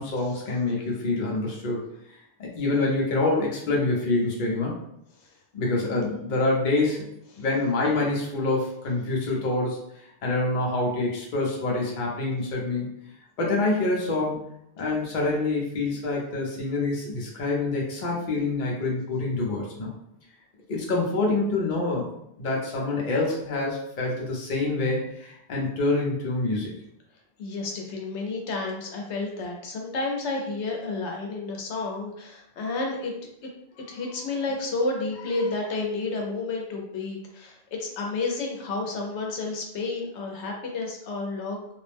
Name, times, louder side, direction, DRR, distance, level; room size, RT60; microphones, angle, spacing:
voice 1, 0.0-1.8 2.4-4.7 5.5-7.0 7.4-9.8 10.2-12.9 13.4-14.4 14.8-19.9 20.7-22.1 22.4-26.7, left 2 dB, 50° left, -3 dB, 0.8 m, -26 dB
voice 2, 27.4-33.1 33.4-33.5 33.8-41.6, left 3 dB, 85° left, 0 dB, 0.9 m, -31 dB
2.5 x 2.0 x 3.3 m, 0.75 s
omnidirectional pair, 1.1 m